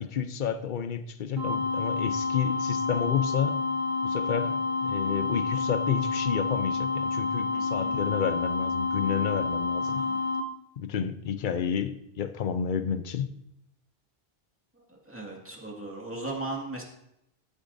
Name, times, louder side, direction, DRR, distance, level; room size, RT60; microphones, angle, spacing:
voice 1, 0.0-3.6 4.0-10.0 10.8-13.3, left 8 dB, 55° left, 11 dB, 0.8 m, -30 dB
sound 1, 1.4-10.4, left 4 dB, 55° right, 1.1 m, -29 dB
voice 2, 7.5-8.0 9.9-10.2 14.8-16.8, right 2 dB, 10° right, -2 dB, 2.0 m, -38 dB
13.0 x 8.5 x 2.7 m, 0.81 s
omnidirectional pair, 1.0 m